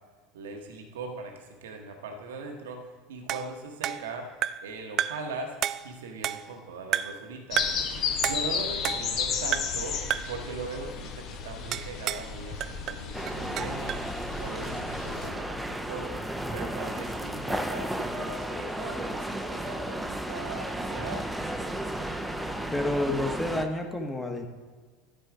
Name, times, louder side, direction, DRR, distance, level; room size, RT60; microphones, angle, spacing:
voice 1, 0.3-4.3 4.6-5.5 5.8-7.7 8.2-10.0 10.3-14.0 14.4-16.2 16.5-21.3, right 3 dB, 70° right, 3 dB, 1.1 m, -40 dB
sound 1, 3.3-4.7 5.0-5.3 5.6-6.6 6.9-7.3 7.6-7.9 8.2-9.2 9.5-9.8 10.1-10.4 11.7-12.3 12.6-14.1, right 11 dB, 45° right, 0.3 m, -32 dB
sound 2, 7.5-15.3, left 6 dB, 45° left, 1.0 m, -33 dB
sound 3, 13.1-23.7, right 1 dB, 5° right, 0.7 m, -33 dB
voice 2, 22.7-24.5, left 1 dB, 10° left, 4 dB, 1.3 m, -29 dB
13.0 x 4.4 x 4.9 m, 1.5 s
figure-of-eight pair, 75°, 0 cm